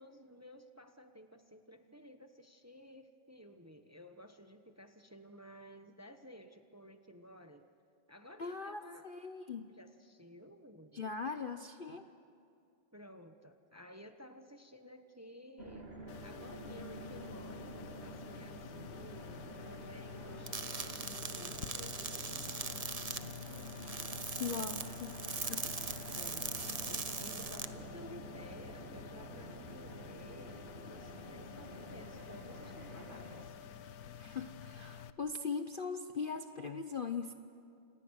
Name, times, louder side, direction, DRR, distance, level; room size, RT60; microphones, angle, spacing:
voice 1, 0.0-7.7 8.1-9.1 9.7-11.0 12.9-15.9 16.2-23.7 26.1-33.6, equal, 15° right, 7 dB, 0.7 m, -55 dB
voice 2, 8.4-9.7 10.9-12.1 24.4-25.8 34.2-37.3, left 5 dB, 80° left, 7 dB, 0.4 m, -40 dB
sound 1, 15.6-33.4, right 2 dB, 30° right, 3.1 m, -49 dB
sound 2, 16.1-35.1, left 8 dB, 60° left, 1.1 m, -49 dB
sound 3, 20.5-27.6, right 4 dB, 60° right, 0.4 m, -41 dB
30.0 x 28.0 x 6.5 m, 2.5 s
omnidirectional pair, 2.2 m